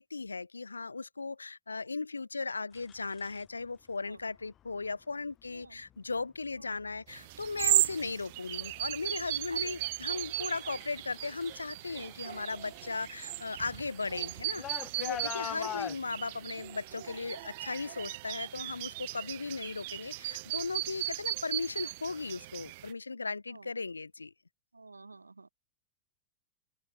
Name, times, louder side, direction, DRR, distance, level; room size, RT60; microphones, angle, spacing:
voice 1, 0.0-24.3, left 3 dB, 80° left, 0.6 m, -37 dB
sound 1, 2.7-3.4 4.6-4.9 5.4-5.9 6.5-7.0 7.3-11.6 11.9-16.0, left 11 dB, 30° left, 1.6 m, -44 dB
voice 2, 5.5-5.8 6.6-6.7 7.8-7.9 9.5-9.9 15.3-15.6 23.5-23.7 24.7-25.5, right 3 dB, 80° right, 0.8 m, -50 dB
sound 2, 7.1-22.9, right 21 dB, 50° right, 0.5 m, -36 dB
open air
figure-of-eight pair, 90°, 0 cm